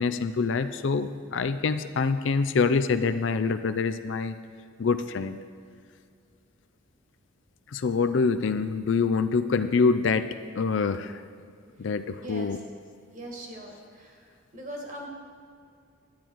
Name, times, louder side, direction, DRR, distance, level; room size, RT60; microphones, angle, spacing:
voice 1, 0.0-4.4 4.8-5.4 7.7-11.2 11.8-12.6, left 4 dB, 60° left, 10 dB, 0.4 m, -25 dB
voice 2, 12.2-12.5 13.1-14.3 14.5-15.1, right 1 dB, 40° right, 0 dB, 1.7 m, -40 dB
12.0 x 8.8 x 4.6 m, 2.3 s
head